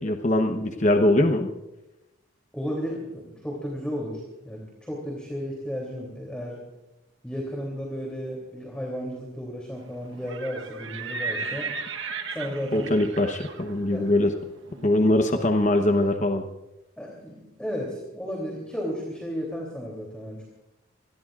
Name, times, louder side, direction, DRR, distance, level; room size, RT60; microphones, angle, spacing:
voice 1, 0.0-1.5 12.7-14.3 14.8-16.4, left 1 dB, 35° left, 4 dB, 1.0 m, -22 dB
voice 2, 2.5-6.6 7.2-11.7 12.3-12.9 13.9-14.1 17.0-20.5, equal, 5° left, -2 dB, 3.1 m, -33 dB
Livestock farm animals working animals, 10.1-16.0, right 4 dB, 70° right, 1.2 m, -36 dB
26.5 x 20.5 x 2.5 m, 0.98 s
head